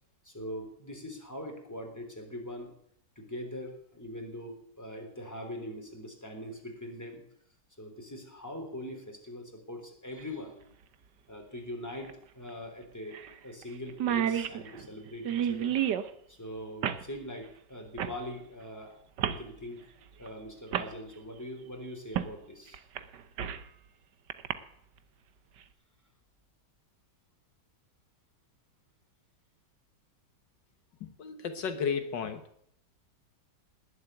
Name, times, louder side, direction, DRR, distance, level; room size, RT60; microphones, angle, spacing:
voice 1, 0.2-2.7 3.2-7.2 7.8-10.6 11.3-15.8 16.3-19.9 20.2-22.8, left 1 dB, 10° left, 2 dB, 3.6 m, -42 dB
sound 1, 10.2-10.3 12.1-12.2 12.5-12.6 13.1-13.3 13.6-13.7 13.9-16.1 16.8-17.1 18.0-18.2 19.2-19.4 20.3-20.4 20.7-20.9 22.2-22.3 22.7-23.7 24.3-24.5, right 9 dB, 75° right, 1.6 m, -31 dB
voice 2, 31.0-32.4, left 6 dB, 80° left, 8 dB, 1.9 m, -33 dB
19.5 x 8.0 x 9.1 m, 0.69 s
omnidirectional pair, 1.9 m